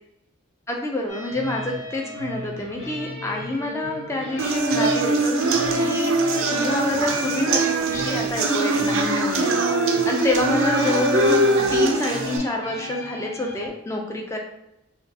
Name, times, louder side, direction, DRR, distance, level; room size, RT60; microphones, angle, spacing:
voice 1, 0.7-6.1 6.5-9.6 9.8-11.4 11.7-14.4, left 2 dB, 15° left, 1 dB, 0.4 m, -27 dB
sound 1, 1.1-13.7, left 1 dB, 85° left, 1.5 m, -36 dB
sound 2, 4.4-12.4, right 2 dB, 80° right, 0.5 m, -22 dB
4.3 x 2.3 x 2.8 m, 0.84 s
head